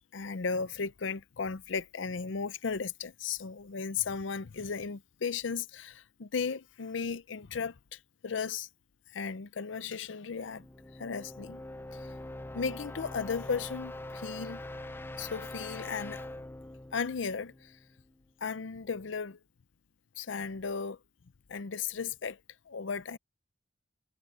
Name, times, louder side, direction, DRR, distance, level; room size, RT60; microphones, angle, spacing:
voice 1, 0.1-8.7 9.1-10.7 10.9-11.6 11.9-12.1 12.5-14.6 15.2-16.3 16.9-17.8 18.4-19.4 20.2-21.0 21.5-22.4 22.7-23.2, left 5 dB, 90° left, 0.6 m, -35 dB
sound 1, 10.4-18.2, left 1 dB, 10° left, 0.4 m, -43 dB
head